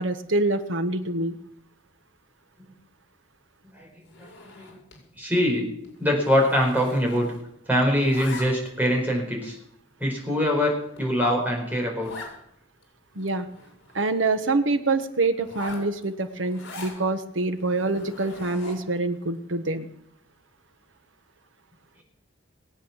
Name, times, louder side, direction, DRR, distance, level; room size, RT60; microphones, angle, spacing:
voice 1, 0.0-1.4 13.1-13.5 13.9-19.8, right 2 dB, 75° right, 9 dB, 1.3 m, -25 dB
Zipper (clothing), 4.0-5.1 5.4-5.6 5.8-7.5 7.8-8.8 9.4-9.5 10.1-10.2 10.6-10.7 11.0-11.1 11.3-11.4 12.0-12.4 12.8-12.9 13.1-14.4 15.4-17.0 17.6-19.0, left 2 dB, 60° left, 5.4 m, -43 dB
voice 2, 4.2-4.7 5.2-5.7 6.0-7.3 7.7-9.6 10.0-12.3, equal, 10° right, -1 dB, 4.6 m, -23 dB
20.5 x 8.6 x 7.3 m, 0.75 s
head